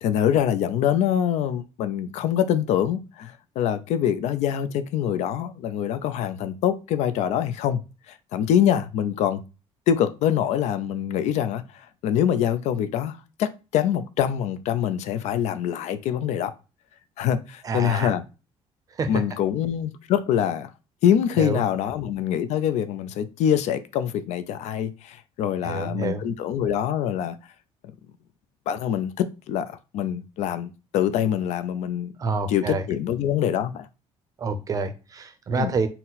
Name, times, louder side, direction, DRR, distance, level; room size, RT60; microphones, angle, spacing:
voice 1, 0.0-9.4 9.9-16.5 17.2-18.2 19.1-20.7 21.0-27.4 28.7-32.1 32.5-33.9 35.5-35.7, left 9 dB, 75° left, 0.4 m, -25 dB
voice 2, 17.6-18.1 19.0-19.2 21.4-21.6 25.6-26.2 32.2-32.8 34.4-35.9, right 3 dB, 30° right, 0.5 m, -27 dB
4.2 x 2.0 x 4.0 m
cardioid pair, 155°, 12 cm